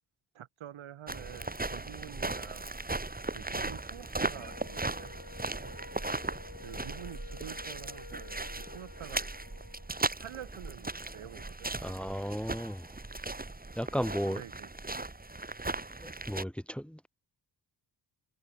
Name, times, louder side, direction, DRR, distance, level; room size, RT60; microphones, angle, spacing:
voice 1, 0.3-2.7 3.3-5.2 5.6-5.8 6.6-8.4 8.7-9.2 10.2-11.7 14.3-14.7, right 11 dB, 80° right, 4.1 m, -47 dB
sound 1, 1.1-16.4, right 2 dB, 20° right, 2.7 m, -37 dB
Wind instrument woodwind instrument, 4.3-9.9, left 6 dB, 55° left, 4.5 m, -52 dB
voice 2, 11.8-12.9 13.7-14.4 16.0-17.1, equal, ahead, 3.4 m, -35 dB
supercardioid pair, 45°, 47 cm